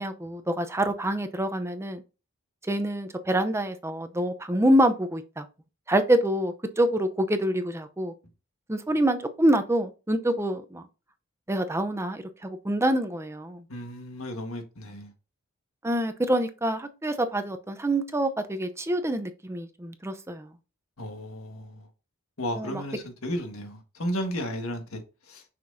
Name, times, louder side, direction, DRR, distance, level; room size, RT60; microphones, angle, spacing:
voice 1, 0.0-2.0 2.7-5.5 5.9-8.1 8.7-10.8 11.5-13.6 15.8-20.5 22.6-22.8, right 1 dB, 15° right, 0.6 m, -26 dB
voice 2, 13.7-15.1 21.0-21.9 22.4-25.4, equal, 75° left, 1.6 m, -34 dB
6.0 x 5.9 x 2.6 m
head